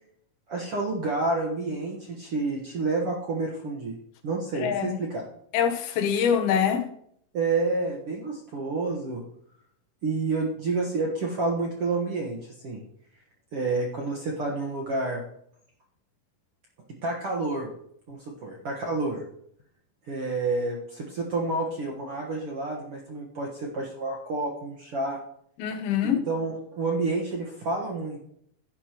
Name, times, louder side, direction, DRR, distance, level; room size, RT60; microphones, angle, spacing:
voice 1, 0.5-3.9 4.2-5.2 7.3-9.2 10.0-12.8 13.5-15.2 17.0-17.7 18.1-19.2 20.1-25.2 26.0-28.2, right 3 dB, 60° right, -1 dB, 1.6 m, -29 dB
voice 2, 4.6-5.0 5.5-6.8 25.6-26.2, left 8 dB, 80° left, 7 dB, 2.8 m, -24 dB
11.0 x 10.5 x 3.0 m, 0.69 s
omnidirectional pair, 4.4 m